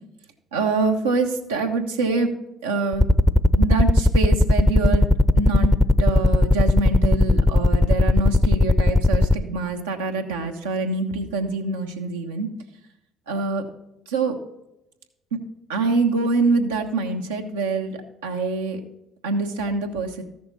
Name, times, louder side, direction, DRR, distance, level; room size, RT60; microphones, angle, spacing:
voice 1, 0.5-2.3 2.6-3.0 3.6-12.5 13.3-13.6 14.1-14.4 15.3-15.4 15.7-18.8 19.2-20.2, right 3 dB, 90° right, 2 dB, 1.2 m, -25 dB
sound 1, 2.9-9.4, left 2 dB, 10° left, 0.6 m, -16 dB
14.0 x 6.7 x 4.1 m, 0.87 s
hypercardioid pair, 55°, 0 cm